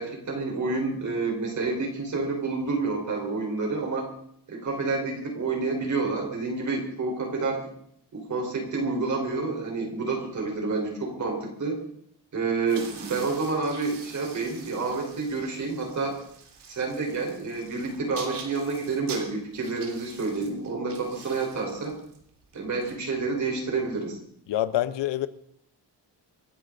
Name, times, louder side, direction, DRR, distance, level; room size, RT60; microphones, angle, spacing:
voice 1, 0.0-4.1 4.5-7.6 8.1-11.8 12.3-16.2 16.7-22.0 22.5-24.2, right 3 dB, 45° right, 4.6 m, -29 dB
sound 1, 12.7-23.6, right 5 dB, 75° right, 3.4 m, -45 dB
voice 2, 24.5-25.3, left 13 dB, 90° left, 1.0 m, -26 dB
27.0 x 10.0 x 4.0 m
wide cardioid pair, 145°, 42 cm